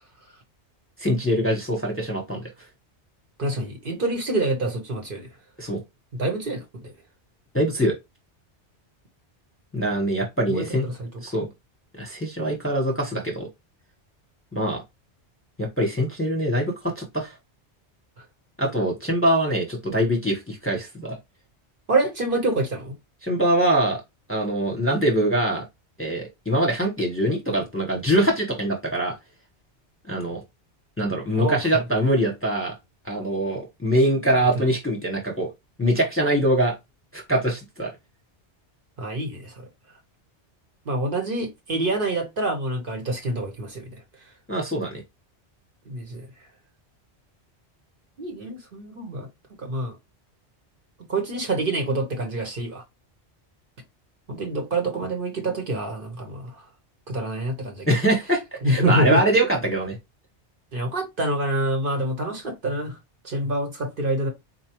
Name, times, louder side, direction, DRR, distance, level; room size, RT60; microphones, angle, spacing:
voice 1, 1.0-2.4 5.6-5.8 7.5-7.9 9.7-10.9 11.2-11.5 12.0-13.5 14.5-14.8 15.6-17.3 18.6-21.2 23.2-24.0 24.3-25.6 26.0-29.1 30.1-30.4 31.0-32.7 33.1-35.5 35.8-36.7 37.1-37.9 44.5-45.0 57.9-60.0, right 1 dB, 15° left, 0.8 m, -23 dB
voice 2, 3.4-5.3 6.1-6.9 10.5-11.1 21.9-22.9 31.3-31.8 34.5-34.7 39.0-39.6 40.9-43.9 45.9-46.2 48.2-49.3 49.6-50.0 51.1-52.8 54.3-56.6 57.1-57.9 58.6-59.2 60.7-63.0 63.2-64.3, right 1 dB, 55° right, 1.0 m, -26 dB
4.1 x 2.3 x 2.8 m
omnidirectional pair, 1.2 m